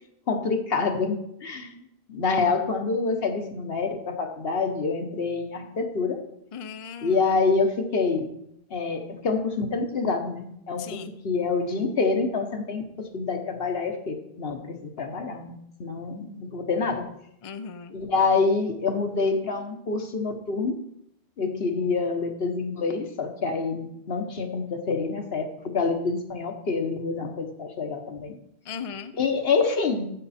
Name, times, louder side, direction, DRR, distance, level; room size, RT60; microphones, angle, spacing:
voice 1, 0.3-1.8 2.1-6.2 7.0-8.3 8.7-17.0 17.9-20.8 21.4-28.3 29.2-30.1, left 4 dB, 70° left, 5 dB, 1.3 m, -27 dB
voice 2, 6.5-7.4 10.8-11.1 17.4-18.0 28.6-29.1, left 6 dB, 40° left, 9 dB, 0.5 m, -37 dB
9.8 x 7.7 x 4.2 m, 0.77 s
omnidirectional pair, 1.1 m